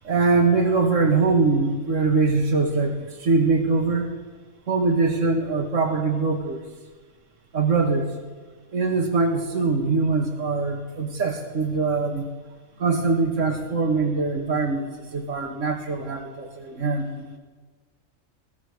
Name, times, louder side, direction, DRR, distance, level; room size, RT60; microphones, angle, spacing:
voice 1, 0.0-4.1 4.7-6.6 7.5-8.1 8.7-12.3 12.8-17.4, right 3 dB, 75° right, 2 dB, 2.4 m, -23 dB
23.5 x 20.0 x 6.6 m, 1.4 s
omnidirectional pair, 1.3 m